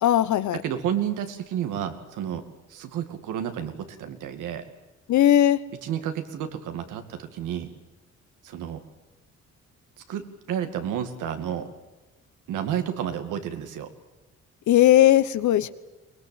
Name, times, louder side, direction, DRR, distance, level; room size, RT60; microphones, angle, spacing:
voice 1, 0.0-0.6 5.1-5.6 14.7-15.7, left 12 dB, 75° left, 14 dB, 1.2 m, -18 dB
voice 2, 0.5-2.4 2.7-4.6 5.8-7.7 8.4-8.8 10.1-11.7 12.5-13.9, right 9 dB, 85° right, 7 dB, 2.3 m, -31 dB
23.5 x 19.5 x 9.1 m, 1.1 s
cardioid pair, 90°, 30 cm